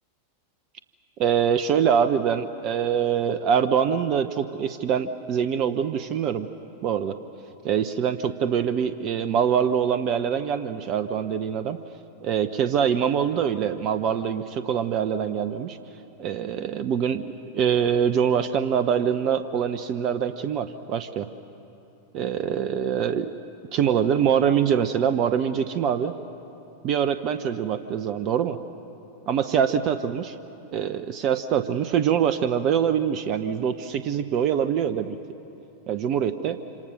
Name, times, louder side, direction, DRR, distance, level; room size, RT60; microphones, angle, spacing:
voice 1, 1.2-6.5 6.8-7.2 7.6-11.8 12.2-15.8 16.2-21.3 22.1-23.3 23.7-26.1 26.8-28.6 29.3-30.3 30.7-35.1 35.9-36.6, right 8 dB, 40° right, 11 dB, 0.8 m, -24 dB
27.0 x 26.5 x 6.5 m, 3.0 s
figure-of-eight pair, 90°, 0 cm